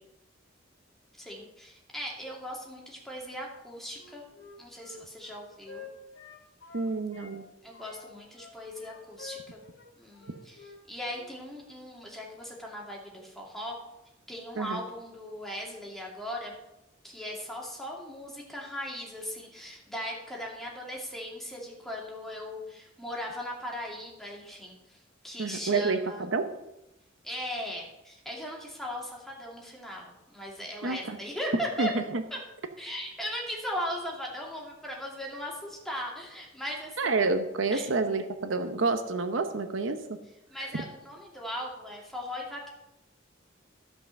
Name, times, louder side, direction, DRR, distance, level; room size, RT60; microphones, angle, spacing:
voice 1, 1.2-4.2 4.6-5.8 7.6-9.6 10.0-13.8 14.3-16.5 17.0-25.0 25.2-26.2 27.2-31.9 32.3-32.4 32.8-37.1 37.7-37.9 40.5-42.7, equal, ahead, -3 dB, 2.6 m, -38 dB
Wind instrument woodwind instrument, 3.9-7.4 7.7-10.8 11.1-11.3, left 4 dB, 75° left, 2.7 m, -49 dB
voice 2, 6.7-7.4 14.6-14.8 25.4-26.5 30.8-31.2 31.8-32.2 37.0-40.0, right 3 dB, 75° right, 8 dB, 0.8 m, -28 dB
13.5 x 5.6 x 6.6 m, 0.91 s
head